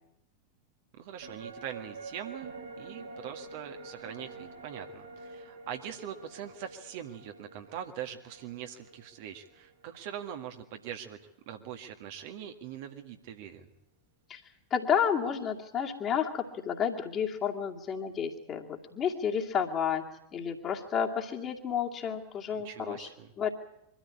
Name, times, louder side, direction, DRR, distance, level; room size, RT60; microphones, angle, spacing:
voice 1, 0.9-11.2 11.5-13.7 22.6-23.3, right 9 dB, 50° right, 5 dB, 1.8 m, -42 dB
sound 1, 1.2-10.7 11.0-11.1, right 3 dB, 65° right, 3.6 m, -48 dB
voice 2, 14.7-20.0 20.3-23.1 23.4-23.5, left 7 dB, 30° left, 1 dB, 2.4 m, -31 dB
23.5 x 13.5 x 9.8 m, 0.85 s
figure-of-eight pair, 90°, 0 cm